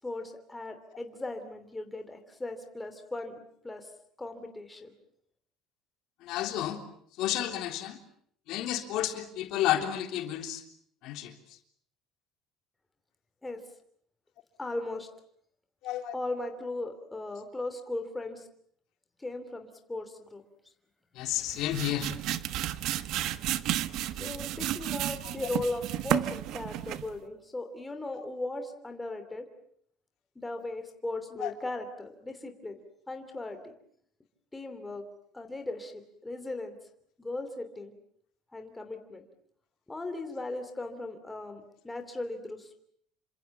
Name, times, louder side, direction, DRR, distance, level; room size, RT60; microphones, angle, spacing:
voice 1, 0.0-3.9 4.2-4.9 13.4-13.6 14.6-15.1 16.1-18.5 19.2-20.4 24.2-29.4 30.3-32.8 33.1-33.7 34.5-35.0 35.3-36.7 37.2-37.9 38.5-39.2 39.9-42.8, left 2 dB, 10° left, 6 dB, 3.0 m, -37 dB
voice 2, 6.2-6.8 7.2-8.0 8.5-10.6 11.0-11.3 15.8-16.1 21.2-22.1 25.2-25.3 31.4-31.5, left 12 dB, 65° left, 5 dB, 3.5 m, -31 dB
sound 1, 21.3-27.2, right 13 dB, 60° right, 1.2 m, -32 dB
28.0 x 25.5 x 7.2 m, 0.66 s
cardioid pair, 145°, 0 cm